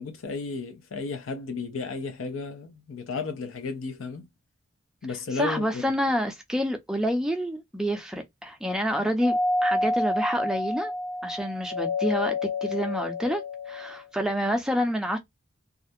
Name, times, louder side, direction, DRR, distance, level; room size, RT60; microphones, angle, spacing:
voice 1, 0.0-4.3 5.0-5.8, left 4 dB, 85° left, 0.5 m, -33 dB
voice 2, 5.3-10.9 11.2-13.4 13.7-15.2, equal, 5° right, 0.4 m, -28 dB
Doorbell, 9.2-14.0, left 2 dB, 45° left, 0.6 m, -28 dB
2.4 x 2.2 x 2.6 m
head